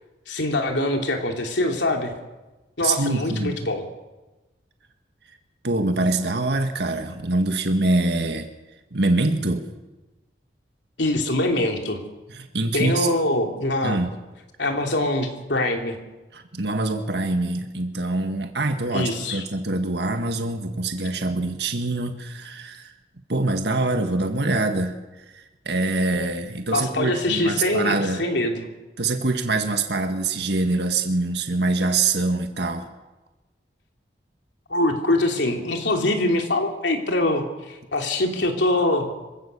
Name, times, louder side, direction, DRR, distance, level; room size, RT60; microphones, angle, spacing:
voice 1, 0.3-2.1 2.8-3.8 11.0-12.0 12.7-14.0 14.6-16.0 18.9-19.4 26.7-28.7 34.7-39.1, left 1 dB, 80° left, 3 dB, 3.2 m, -23 dB
voice 2, 2.8-3.6 5.6-8.5 8.9-9.7 12.3-13.1 13.8-14.1 16.3-22.9 23.3-25.0 25.3-28.3 29.0-32.9, right 2 dB, 65° right, 5 dB, 1.8 m, -24 dB
26.5 x 16.0 x 6.9 m, 1.1 s
head